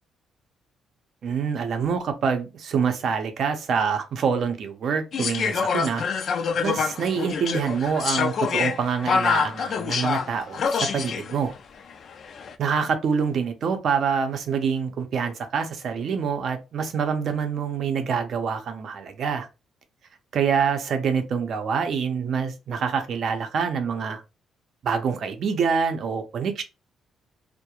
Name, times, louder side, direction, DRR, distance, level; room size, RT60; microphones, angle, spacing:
voice 1, 1.2-6.0 6.6-11.5 12.6-19.5 20.3-24.2 24.8-26.6, right 6 dB, 65° right, 0.5 m, -26 dB
sound 1, 5.1-11.4 12.2-12.5, left 6 dB, 60° left, 0.3 m, -26 dB
2.3 x 2.1 x 2.8 m
cardioid pair, 90°, 0 cm